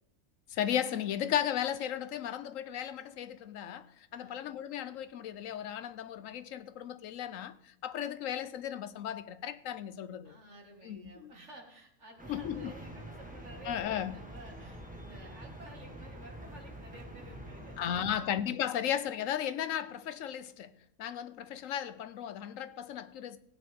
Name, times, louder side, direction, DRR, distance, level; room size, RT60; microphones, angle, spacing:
voice 1, 0.5-3.9 4.1-10.4 10.8-11.3 12.3-12.7 13.6-14.1 17.8-20.7 21.0-23.4, left 10 dB, 75° left, 1.0 m, -35 dB
voice 2, 4.1-4.4 10.2-18.3 18.5-18.6, right 2 dB, 55° right, 2.6 m, -52 dB
sound 1, 12.2-18.1, right 1 dB, 5° right, 1.5 m, -46 dB
16.5 x 9.6 x 3.7 m
omnidirectional pair, 1.4 m